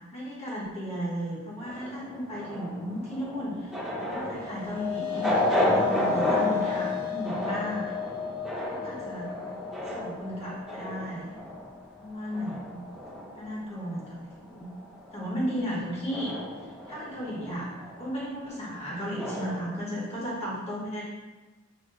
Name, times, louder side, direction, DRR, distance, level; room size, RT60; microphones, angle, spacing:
voice 1, 0.1-3.8 4.1-8.0 8.7-9.3 9.9-11.4 12.0-12.8 13.3-14.7 15.1-16.3 16.6-17.7 18.0-21.0, equal, 30° left, -7 dB, 1.2 m, -34 dB
sound 1, 1.6-14.2 14.5-19.8, equal, 5° right, 0.7 m, -33 dB
sound 2, 4.1-12.6, left 11 dB, 90° left, 1.0 m, -34 dB
5.7 x 2.3 x 2.5 m, 1.2 s
head